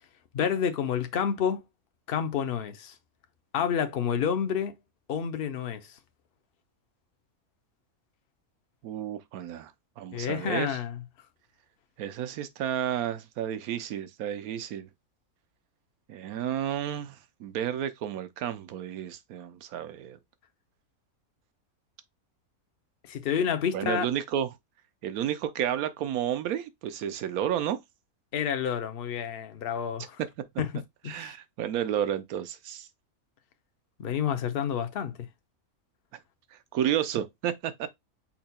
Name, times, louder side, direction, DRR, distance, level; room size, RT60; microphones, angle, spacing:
voice 1, 0.3-1.6 2.1-2.9 3.5-4.7 5.1-6.0 10.1-11.0 23.1-24.1 28.3-30.2 30.6-30.7 31.0-31.3 34.0-35.1, left 8 dB, 50° left, 0.7 m, -29 dB
voice 2, 8.8-10.8 12.0-14.9 16.1-20.2 23.7-24.5 25.0-27.8 31.1-32.9 36.7-37.9, right 10 dB, 90° right, 1.1 m, -31 dB
5.7 x 4.2 x 2.2 m
omnidirectional pair, 1.5 m